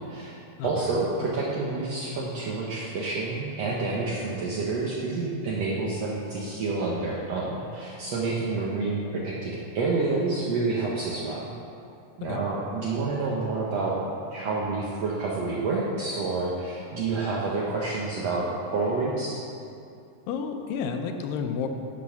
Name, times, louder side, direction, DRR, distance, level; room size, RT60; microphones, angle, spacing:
voice 1, 0.6-11.5 12.2-13.9 14.3-19.4, right 3 dB, 75° right, -4 dB, 1.5 m, -28 dB
voice 2, 20.3-21.7, left 6 dB, 90° left, 5 dB, 2.3 m, -31 dB
11.0 x 4.2 x 5.6 m, 2.5 s
omnidirectional pair, 3.9 m